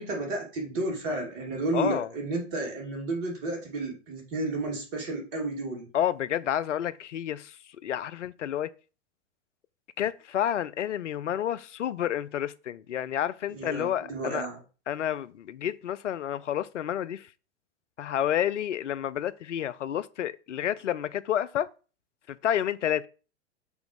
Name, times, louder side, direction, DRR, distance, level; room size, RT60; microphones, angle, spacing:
voice 1, 0.0-5.9 13.5-14.6, right 2 dB, 40° right, 2.6 m, -32 dB
voice 2, 1.7-2.1 5.9-8.7 10.0-14.5 14.9-17.3 18.0-21.7 22.3-23.1, left 10 dB, 75° left, 0.5 m, -30 dB
6.4 x 3.0 x 4.9 m
figure-of-eight pair, 95°, 36 cm